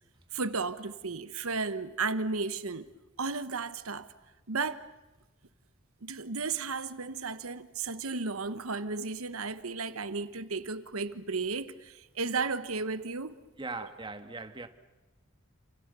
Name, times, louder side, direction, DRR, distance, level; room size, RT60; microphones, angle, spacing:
voice 1, 0.3-2.9 3.2-4.1 4.5-4.9 6.0-13.3, right 4 dB, 90° right, 1.2 m, -34 dB
voice 2, 13.6-14.7, right 3 dB, 25° right, 1.6 m, -39 dB
29.0 x 27.5 x 6.9 m
head